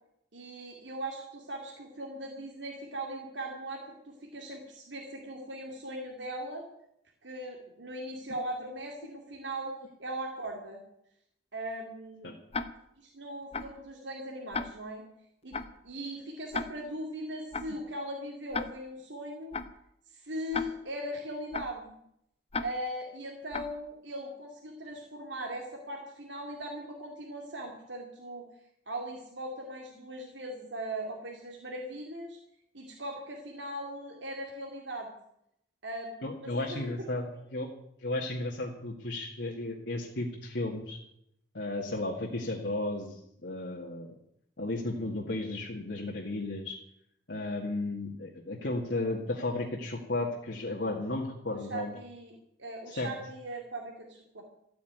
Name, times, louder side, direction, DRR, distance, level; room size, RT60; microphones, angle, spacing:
voice 1, 0.3-6.6 7.2-10.8 11.5-12.3 13.0-15.0 15.4-15.6 15.8-19.5 20.1-22.0 22.6-28.5 28.9-32.4 32.7-35.1 35.8-37.0 37.3-37.4 51.5-52.3 52.6-54.4, right 1 dB, 90° right, 0 dB, 2.6 m, -39 dB
Tick-tock, 12.5-12.6 13.5-13.7 14.5-14.6 15.5-15.7 16.5-16.6 17.5-17.7 18.5-18.6 19.5-19.7 20.5-20.6 21.5-21.7 22.5-22.6 23.5-23.7, left 4 dB, 35° left, 1.0 m, -33 dB
voice 2, 36.2-37.7 38.0-41.0 41.5-44.2 44.6-46.8 47.3-51.9 52.9-53.1, left 2 dB, 70° left, -2 dB, 2.0 m, -34 dB
14.0 x 8.8 x 9.2 m, 0.75 s
head